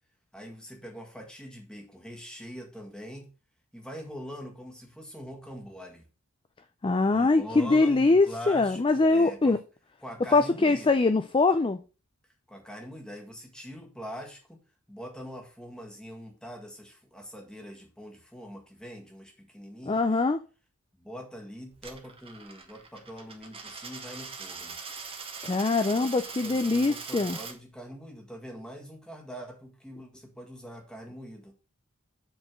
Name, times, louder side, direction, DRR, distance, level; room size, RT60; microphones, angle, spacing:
voice 1, 0.3-3.3 3.7-6.1 7.1-9.6 10.0-11.1 12.5-14.6 14.9-20.2 21.0-24.8 25.8-31.5, equal, 5° left, 1.8 m, -43 dB
voice 2, 6.8-9.6 10.3-11.8 19.9-20.4 25.4-27.4, left 3 dB, 25° left, 0.4 m, -23 dB
Coin (dropping), 21.7-27.5, right 5 dB, 25° right, 1.3 m, -41 dB
8.0 x 4.3 x 6.2 m
head